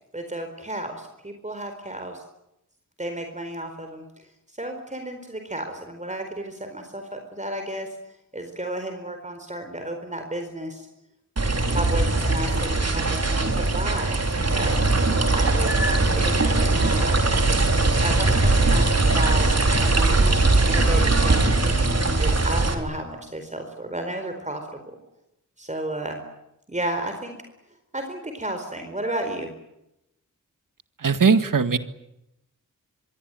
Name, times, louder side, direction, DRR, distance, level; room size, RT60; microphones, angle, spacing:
voice 1, 0.1-2.2 3.0-4.0 4.6-7.9 8.3-10.9 11.7-14.8 15.3-17.4 18.0-19.5 19.8-20.3 20.6-24.9 25.6-26.2 26.7-27.4 27.9-29.5, right 1 dB, 20° right, 5 dB, 4.4 m, -32 dB
sound 1, 11.4-22.7, right 2 dB, 50° right, 4.2 m, -20 dB
voice 2, 31.0-31.8, right 5 dB, 75° right, 10 dB, 2.0 m, -19 dB
26.0 x 23.0 x 9.2 m, 0.86 s
wide cardioid pair, 105°, 32 cm